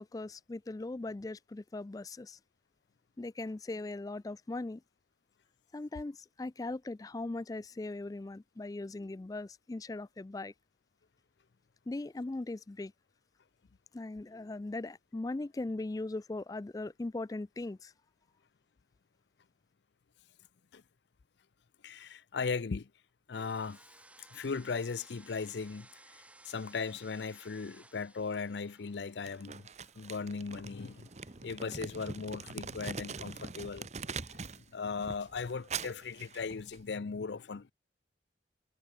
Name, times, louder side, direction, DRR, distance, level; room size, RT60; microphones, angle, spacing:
voice 1, 0.0-2.4 3.2-4.8 5.7-10.5 11.9-12.9 13.9-17.9, left 2 dB, 20° left, 0.3 m, -39 dB
voice 2, 21.8-22.9 23.3-23.8 24.3-29.7 30.0-31.1 31.4-37.7, left 5 dB, 70° left, 0.5 m, -38 dB
sound 1, 23.3-31.5, right 2 dB, 5° right, 1.9 m, -60 dB
Crumpling crinkling, 29.2-34.6 35.0-36.9, right 5 dB, 40° right, 1.1 m, -43 dB
head